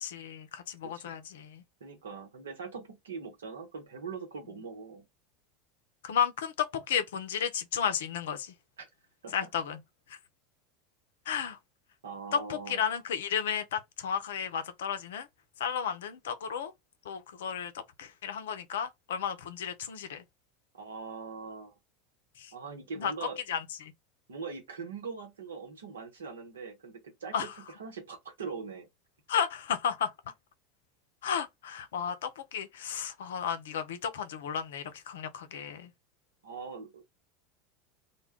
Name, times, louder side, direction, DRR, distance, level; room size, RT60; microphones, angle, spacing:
voice 1, 0.0-1.6 6.0-8.5 9.3-9.8 10.1-10.2 11.3-11.6 12.3-15.3 15.6-16.7 17.1-20.2 22.4-22.5 23.0-23.1 23.5-23.9 27.3-27.5 29.3-30.1 31.2-35.9, left 8 dB, 70° left, 0.4 m, -33 dB
voice 2, 0.8-1.1 1.8-5.1 8.8-8.9 9.2-9.5 12.0-12.8 20.7-21.7 22.5-23.4 24.3-27.5 27.8-28.9 36.4-37.1, right 5 dB, 75° right, 0.9 m, -42 dB
2.2 x 2.1 x 3.5 m
figure-of-eight pair, 80°, 0 cm